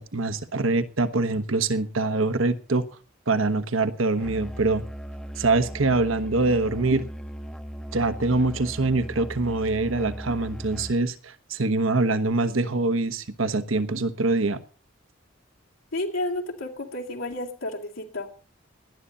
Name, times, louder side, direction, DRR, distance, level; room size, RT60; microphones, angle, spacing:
voice 1, 0.0-2.9 3.3-4.8 5.4-7.1 7.9-14.6, right 3 dB, 80° right, 12 dB, 1.2 m, -24 dB
Musical instrument, 4.2-11.1, equal, 5° left, 0.7 m, -38 dB
voice 2, 15.9-18.3, left 1 dB, 85° left, 1 dB, 2.6 m, -31 dB
19.0 x 11.5 x 4.1 m, 0.36 s
head